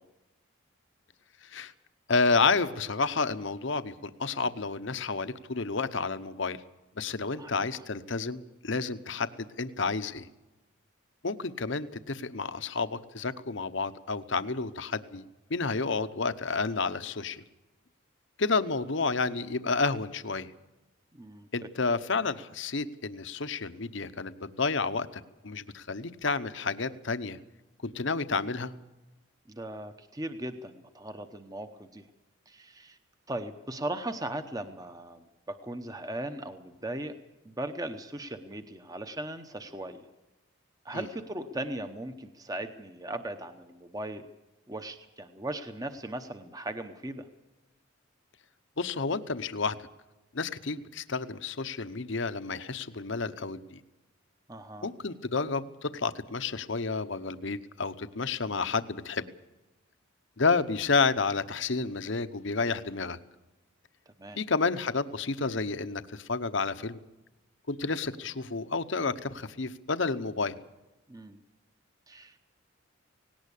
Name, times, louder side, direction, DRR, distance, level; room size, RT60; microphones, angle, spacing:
voice 1, 1.4-1.7 2.1-6.6 7.0-10.3 11.2-15.2 15.5-17.4 18.4-20.5 21.5-27.4 27.8-28.7 40.9-41.0 48.8-49.9 50.3-53.8 54.8-59.3 60.4-63.2 64.4-67.0 67.7-70.6, left 4 dB, 60° left, 12 dB, 0.9 m, -30 dB
voice 2, 7.3-7.8 21.1-21.5 29.5-32.1 32.5-33.0 33.3-37.1 37.4-40.0 40.8-44.3 44.7-47.3 54.5-54.9 64.2-64.4 71.1-71.4 72.1-72.4, right 1 dB, 15° right, 8 dB, 0.9 m, -38 dB
18.5 x 18.0 x 8.4 m, 1.0 s
head